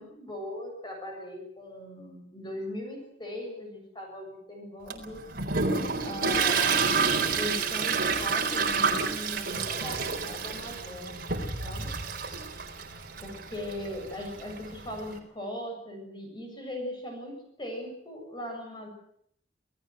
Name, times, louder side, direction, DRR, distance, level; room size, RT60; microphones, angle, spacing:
voice 1, 0.0-5.2 6.0-6.9 7.3-11.2 11.6-11.9 13.2-18.9, left 1 dB, 25° left, 2 dB, 7.5 m, -39 dB
Toilet flush, 4.9-15.1, right 5 dB, 55° right, 4.2 m, -29 dB
27.5 x 17.5 x 7.8 m, 0.69 s
head